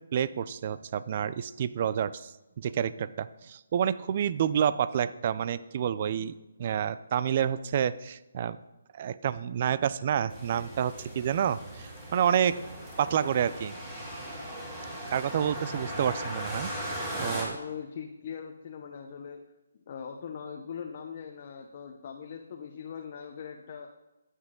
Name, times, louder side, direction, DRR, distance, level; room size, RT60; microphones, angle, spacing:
voice 1, 0.0-2.3 2.6-8.6 9.0-12.6 13.0-13.7 15.1-16.7 17.2-17.6, right 9 dB, 40° right, 16 dB, 0.4 m, -29 dB
sound 1, 10.3-17.4, right 1 dB, 15° right, 3.5 m, -38 dB
voice 2, 17.5-19.4 19.9-23.9, left 7 dB, 40° left, 3 dB, 0.8 m, -41 dB
13.0 x 8.2 x 3.7 m, 0.99 s
hypercardioid pair, 155°, 0 cm